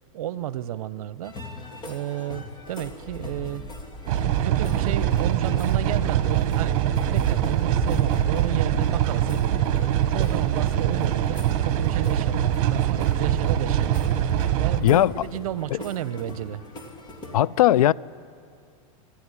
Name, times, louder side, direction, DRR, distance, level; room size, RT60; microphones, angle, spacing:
voice 1, 0.1-1.4 1.9-3.6 4.2-6.8 7.1-9.4 9.8-14.3 14.6-16.6, right 12 dB, 75° right, 0.8 m, -32 dB
sound 1, 1.2-17.4, left 1 dB, 25° left, 2.7 m, -38 dB
sound 2, 4.1-14.8, right 10 dB, 55° right, 1.5 m, -23 dB
voice 2, 14.8-15.3 15.7-15.8 17.3-17.9, left 12 dB, 90° left, 0.5 m, -18 dB
26.0 x 12.0 x 9.9 m
supercardioid pair, 140°, 18 cm